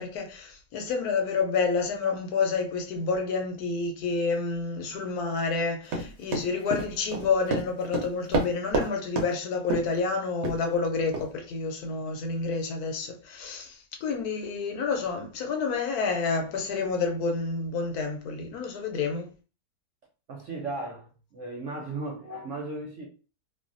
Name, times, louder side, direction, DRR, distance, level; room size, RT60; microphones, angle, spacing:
voice 1, 0.0-19.3, left 4 dB, 70° left, 1.1 m, -29 dB
Run, 5.9-8.9 9.2-9.3 9.7-10.0 10.4-10.6 11.1-11.3, right 2 dB, 85° right, 1.3 m, -28 dB
voice 2, 20.3-23.1, right 2 dB, 65° right, 0.8 m, -36 dB
3.2 x 2.2 x 2.5 m
omnidirectional pair, 1.8 m